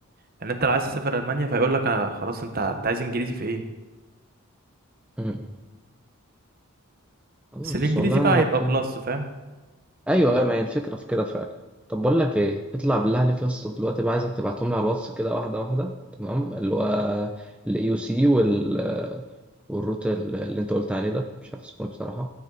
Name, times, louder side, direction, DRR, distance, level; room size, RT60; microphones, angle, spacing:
voice 1, 0.4-3.6 7.6-9.3, right 2 dB, 45° right, 6 dB, 1.1 m, -25 dB
voice 2, 5.2-5.5 7.5-8.8 10.1-11.5 11.9-19.2 19.7-22.3, right 1 dB, 5° right, 3 dB, 0.5 m, -25 dB
15.5 x 9.5 x 4.0 m, 1.2 s
head